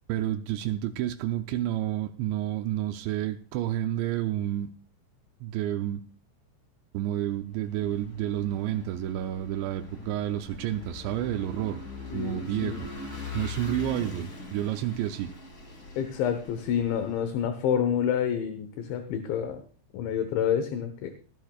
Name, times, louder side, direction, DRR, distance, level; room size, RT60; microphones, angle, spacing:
voice 1, 0.1-4.7 5.4-6.0 6.9-11.8 12.1-12.9 13.3-15.3, right 12 dB, 85° right, 2.6 m, -30 dB
Vehicle / Engine, 7.5-17.3, left 3 dB, 25° left, 1.8 m, -42 dB
voice 2, 12.1-12.8 16.0-19.6 19.9-21.1, left 8 dB, 75° left, 3.2 m, -28 dB
19.5 x 14.0 x 2.4 m
omnidirectional pair, 5.8 m